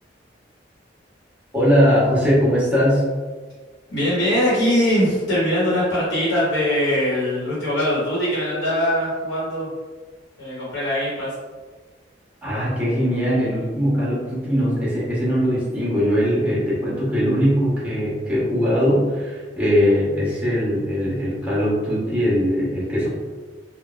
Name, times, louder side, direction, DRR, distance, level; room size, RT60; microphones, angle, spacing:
voice 1, 1.5-3.0 12.4-23.1, equal, 5° right, -8 dB, 0.9 m, -20 dB
voice 2, 3.9-9.7 10.4-11.3, equal, 85° left, -8 dB, 1.0 m, -21 dB
3.1 x 2.1 x 2.4 m, 1.4 s
head